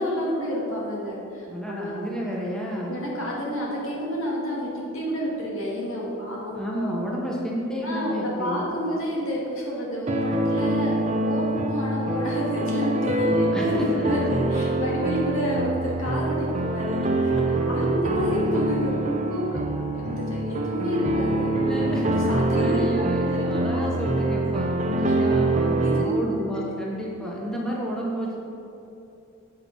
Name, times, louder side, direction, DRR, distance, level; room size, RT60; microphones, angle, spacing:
voice 1, 0.0-2.1 2.9-6.9 7.8-17.3 17.7-19.4 20.0-21.5 22.1-24.0 25.8-26.3, equal, 80° left, -4 dB, 2.1 m, -29 dB
voice 2, 1.5-2.9 6.5-8.6 13.3-14.1 17.3-17.4 21.5-22.1 22.6-28.4, equal, 5° left, -4 dB, 1.0 m, -31 dB
sound 1, 10.1-26.0, right 2 dB, 35° right, 0.6 m, -25 dB
8.2 x 5.8 x 5.4 m, 2.8 s
head